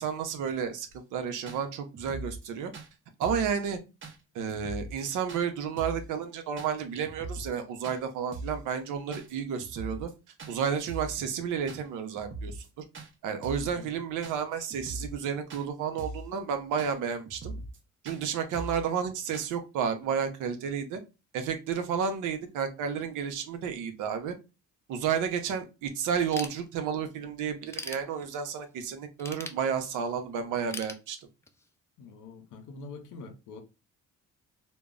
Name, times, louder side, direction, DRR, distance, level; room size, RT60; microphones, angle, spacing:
voice 1, 0.0-2.7 3.2-3.8 4.3-10.1 10.5-12.8 13.2-17.5 18.0-21.0 21.3-24.4 24.9-31.2, right 7 dB, 85° right, 0.6 m, -31 dB
sound 1, 0.9-1.0 1.5-1.6 1.9-2.5 2.7-2.9 3.2-3.5 4.0-4.2 4.5-5.0 5.3-5.4 5.8-6.1 6.6-6.7 7.0-7.6 7.8-8.0 8.3-8.6 9.1-9.3 9.6-10.1 10.4-10.5 10.9-11.2 11.7-11.8 12.2-12.7 12.9-13.1 13.4-13.7 14.2-14.4 14.7-15.2 15.5-15.7 16.0-16.3 16.8-16.9 17.3-17.8 18.1-18.2 18.5-18.8 19.3-19.5, right 2 dB, 40° right, 0.6 m, -40 dB
voice 2, 13.6-13.9 32.0-33.6, left 4 dB, 85° left, 0.7 m, -45 dB
Ratchet pawl / Tools, 26.3-27.1 27.5-28.6 29.2-30.2 30.7-31.7, left 2 dB, 10° left, 0.3 m, -41 dB
2.2 x 2.0 x 3.6 m
cardioid pair, 90°, 30 cm